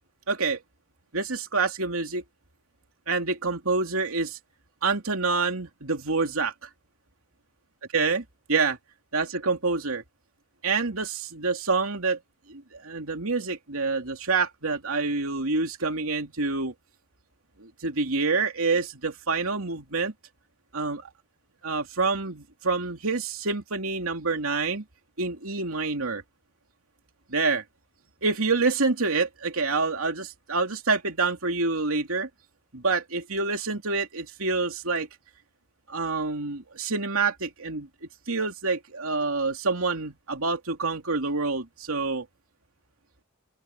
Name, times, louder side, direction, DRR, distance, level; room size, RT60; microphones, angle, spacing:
voice 1, 0.3-0.6 1.1-2.2 3.1-4.4 4.8-6.7 7.9-8.8 9.1-10.0 10.6-12.2 12.5-16.7 17.6-20.1 20.7-21.1 21.6-24.8 25.2-26.2 27.3-27.6 28.2-32.3 32.7-35.1 35.9-37.9 38.3-42.3, right 4 dB, 80° right, 2.9 m, -27 dB
open air
head